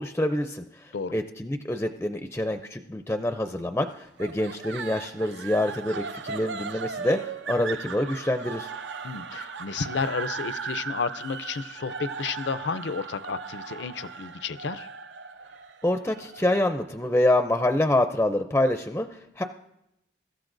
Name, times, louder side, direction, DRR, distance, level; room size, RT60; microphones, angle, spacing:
voice 1, 0.0-8.7 15.8-19.4, left 1 dB, 10° left, 7 dB, 0.4 m, -26 dB
sound 1, 4.2-17.4, right 5 dB, 80° right, 0.6 m, -37 dB
voice 2, 9.0-14.9, left 5 dB, 75° left, 14 dB, 0.5 m, -32 dB
22.5 x 13.5 x 2.6 m, 0.84 s
head